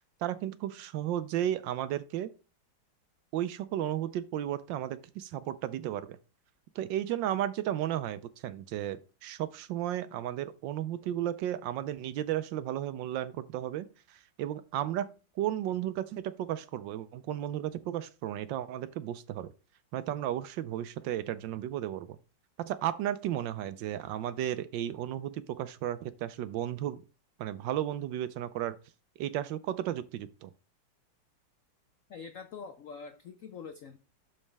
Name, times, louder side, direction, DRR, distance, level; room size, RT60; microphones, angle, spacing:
voice 1, 0.2-2.3 3.3-6.2 6.7-15.1 15.4-19.5 19.9-22.2 22.6-27.0 27.4-28.8 29.2-30.5, right 12 dB, 75° right, 1.2 m, -34 dB
voice 2, 32.1-34.0, left 5 dB, 75° left, 0.7 m, -44 dB
12.0 x 4.2 x 3.3 m
omnidirectional pair, 2.2 m